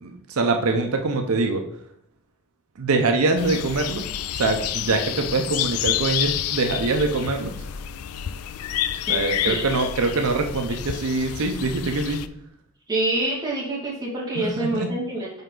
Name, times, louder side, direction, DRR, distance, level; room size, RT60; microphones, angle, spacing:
voice 1, 0.0-1.6 2.8-4.1 4.3-7.5 9.1-12.2 14.4-14.9, right 3 dB, 80° right, 4 dB, 0.6 m, -24 dB
sound 1, 3.4-12.3, left 11 dB, 85° left, 0.3 m, -29 dB
voice 2, 9.1-9.6 12.9-15.4, right 2 dB, 20° right, -6 dB, 1.9 m, -26 dB
5.2 x 5.1 x 3.8 m, 0.70 s
head